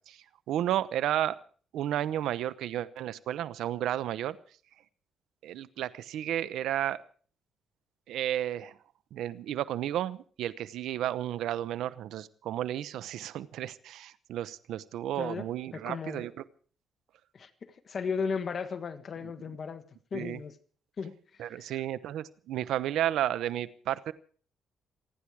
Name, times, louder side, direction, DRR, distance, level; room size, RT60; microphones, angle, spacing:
voice 1, 0.1-1.4 1.7-4.4 5.4-7.0 8.1-8.8 9.1-16.4 20.1-20.4 21.4-24.1, right 12 dB, 80° right, 16 dB, 0.9 m, -32 dB
voice 2, 15.2-15.5 15.7-16.3 17.3-19.8 20.1-20.6 21.0-21.8, left 5 dB, 45° left, 10 dB, 1.5 m, -36 dB
27.5 x 10.0 x 4.8 m, 0.44 s
cardioid pair, 90°, 0 cm